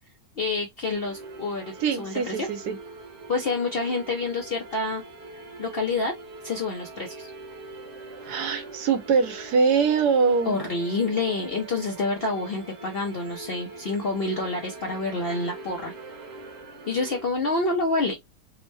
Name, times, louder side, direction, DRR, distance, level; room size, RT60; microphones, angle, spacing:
voice 1, 0.4-2.5 3.3-5.0 5.6-6.1 6.4-7.3 10.5-15.9 16.9-18.1, left 3 dB, 60° left, 0.6 m, -28 dB
sound 1, 0.9-17.3, right 3 dB, 50° right, 1.2 m, -42 dB
voice 2, 1.8-2.8 8.2-10.6, right 5 dB, 70° right, 1.2 m, -23 dB
3.5 x 2.1 x 3.2 m
omnidirectional pair, 1.8 m